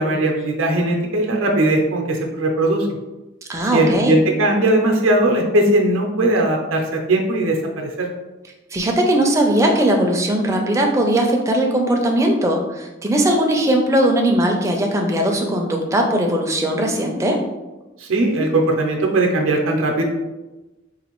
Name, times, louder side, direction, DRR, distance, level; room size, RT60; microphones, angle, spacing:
voice 1, 0.0-2.9 3.7-8.1 18.0-20.0, right 1 dB, 90° right, 1 dB, 0.6 m, -19 dB
voice 2, 3.5-4.1 8.7-17.4, right 1 dB, 15° right, 1 dB, 0.4 m, -19 dB
4.0 x 2.5 x 2.9 m, 1.1 s
head